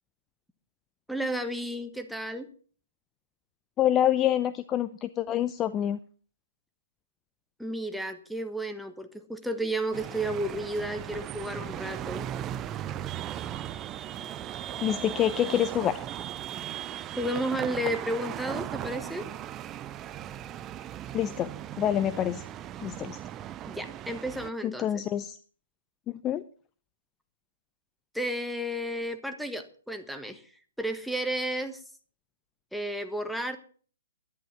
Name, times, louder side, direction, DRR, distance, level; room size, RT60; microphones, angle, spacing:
voice 1, 1.1-2.5 7.6-12.3 17.2-19.3 23.7-25.0 28.1-30.4 30.8-31.8 32.7-33.6, right 1 dB, ahead, 7 dB, 1.4 m, -32 dB
voice 2, 3.8-6.0 14.8-16.0 21.1-21.5 21.8-22.5 22.8-23.2 24.6-25.4 26.2-26.4, left 11 dB, 20° left, 13 dB, 0.5 m, -26 dB
sound 1, 9.9-24.5, right 11 dB, 20° right, 0.6 m, -37 dB
11.5 x 10.5 x 7.3 m, 0.43 s
figure-of-eight pair, 125°, 0 cm